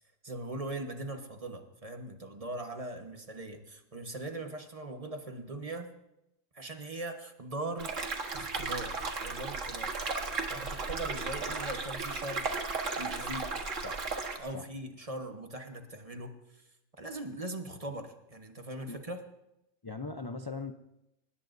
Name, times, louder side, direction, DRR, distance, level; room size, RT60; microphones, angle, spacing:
voice 1, 0.2-5.9 6.5-7.9 8.3-10.0 10.2-12.5 13.0-13.5 14.4-16.6 17.0-19.2, right 2 dB, 30° right, 5 dB, 1.2 m, -40 dB
sound 1, 7.8-14.4, right 4 dB, 70° right, 1.9 m, -35 dB
voice 2, 19.8-20.7, left 3 dB, 30° left, 7 dB, 0.4 m, -39 dB
24.0 x 20.0 x 2.7 m, 0.85 s
omnidirectional pair, 1.4 m